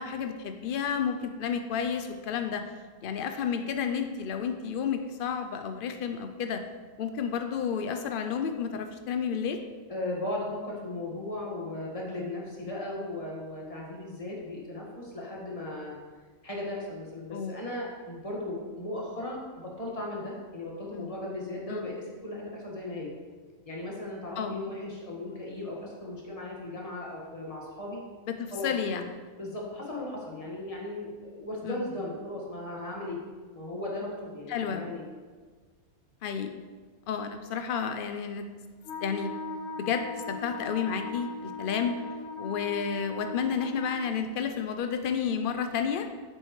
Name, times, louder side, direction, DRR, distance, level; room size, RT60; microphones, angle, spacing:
voice 1, 0.0-2.6 3.0-6.6 7.0-9.6 17.3-17.7 20.9-21.1 21.7-21.8 24.4-24.6 28.4-29.1 31.6-31.8 34.5-34.9 36.2-36.6 37.1-38.5 39.0-39.3 39.8-42.0 42.4-46.1, left 7 dB, 85° left, 7 dB, 0.4 m, -31 dB
voice 2, 9.9-16.0 16.4-23.1 23.6-28.0 28.5-28.7 29.4-33.2 33.5-35.0, left 1 dB, 25° left, -3 dB, 1.7 m, -37 dB
Wind instrument woodwind instrument, 38.8-44.0, left 2 dB, 60° left, 0.9 m, -39 dB
9.0 x 7.5 x 3.2 m, 1.5 s
omnidirectional pair, 1.5 m